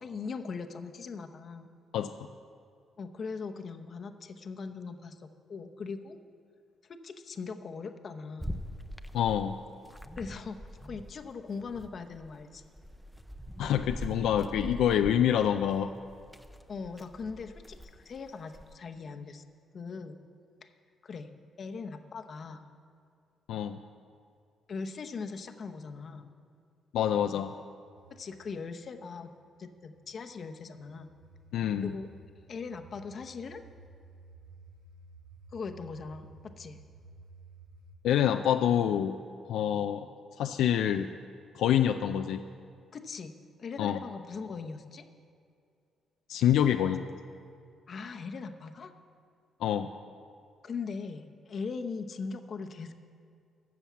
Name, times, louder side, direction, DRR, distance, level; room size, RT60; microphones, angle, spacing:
voice 1, 0.0-1.7 3.0-6.2 6.9-8.5 10.2-10.6 10.8-12.7 16.7-19.4 19.7-20.2 21.0-21.3 21.6-22.6 24.7-26.3 28.1-29.3 29.6-31.1 31.8-32.1 32.5-33.6 35.5-36.8 42.9-43.3 43.6-45.0 47.9-48.9 50.6-52.9, left 5 dB, 50° left, 6 dB, 0.8 m, -40 dB
sound 1, 8.4-11.2 11.5-18.7, equal, ahead, 0.6 m, -43 dB
voice 2, 9.1-9.6 13.6-15.9 23.5-23.8 26.9-27.5 31.5-31.9 38.0-39.2 39.5-40.1 40.4-41.1 41.5-42.4 43.8-44.0 46.3-47.1 49.6-49.9, left 10 dB, 85° left, 7 dB, 0.4 m, -26 dB
sound 2, 28.0-38.0, right 3 dB, 85° right, 1.4 m, -55 dB
12.5 x 7.1 x 7.2 m, 2.3 s
cardioid pair, 90°, 0 cm